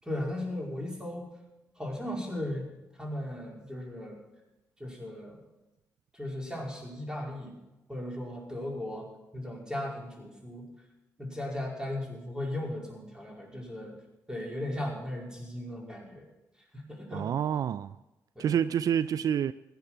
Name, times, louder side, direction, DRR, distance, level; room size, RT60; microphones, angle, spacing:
voice 1, 0.0-1.3 1.8-2.7 3.0-4.2 4.8-5.4 6.1-7.6 7.9-9.1 9.3-10.7 11.2-14.0 14.3-16.3 16.7-17.3 18.4-18.6, left 1 dB, 10° right, 5.2 m, -37 dB
voice 2, 17.1-17.9 18.4-19.5, right 9 dB, 70° right, 0.4 m, -28 dB
16.0 x 10.0 x 6.0 m
cardioid pair, 65°, 7 cm